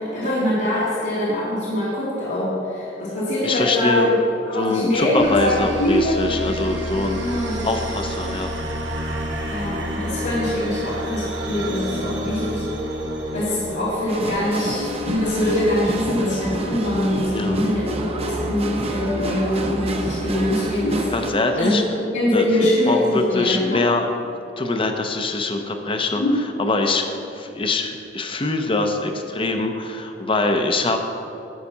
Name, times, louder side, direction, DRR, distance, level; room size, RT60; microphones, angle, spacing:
voice 1, 0.0-4.2 4.5-6.2 7.2-7.7 9.5-12.6 13.3-21.1 21.6-23.8 26.2-26.3, left 1 dB, 85° left, -11 dB, 2.3 m, -23 dB
voice 2, 3.4-4.1 4.5-7.2 7.6-8.6 17.3-17.6 21.1-21.8 22.3-24.1 24.6-26.2 26.6-27.0 27.4-31.0, left 2 dB, 30° left, 5 dB, 0.8 m, -23 dB
sound 1, 5.2-14.6, equal, 70° right, 1.2 m, -29 dB
sound 2, 14.1-21.3, right 1 dB, 35° right, 0.8 m, -28 dB
11.0 x 4.2 x 7.2 m, 2.7 s
head